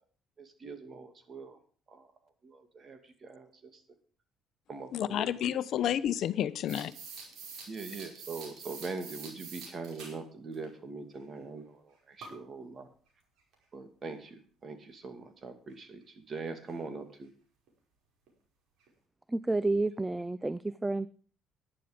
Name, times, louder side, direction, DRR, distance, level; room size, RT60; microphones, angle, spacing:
voice 1, 0.4-1.6 1.9-2.1 2.4-3.7 4.7-5.3 7.7-11.8 12.1-12.9 13.7-17.3, right 4 dB, 40° right, 2.5 m, -42 dB
voice 2, 4.9-6.9, left 10 dB, 65° left, 0.8 m, -30 dB
sound 1, 6.7-10.2 10.5-10.7 12.2-12.4 13.5-13.6 16.7-16.8 17.1-17.2 17.7-17.8 18.3-18.4 18.9-19.0, right 5 dB, 75° right, 5.2 m, -46 dB
voice 3, 19.3-21.1, right 2 dB, 15° right, 0.5 m, -30 dB
11.5 x 11.5 x 5.2 m
cardioid pair, 90°, 0 cm